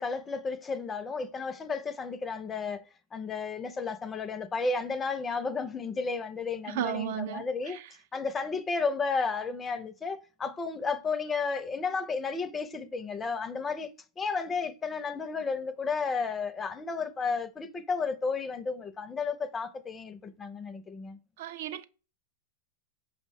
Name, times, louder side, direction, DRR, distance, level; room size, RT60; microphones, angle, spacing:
voice 1, 0.0-2.8 3.1-7.8 8.1-21.2, left 4 dB, 20° left, 0.4 m, -33 dB
voice 2, 6.7-7.9 21.4-21.8, right 10 dB, 65° right, 0.3 m, -34 dB
4.9 x 2.1 x 3.4 m
hypercardioid pair, 120°, 0 cm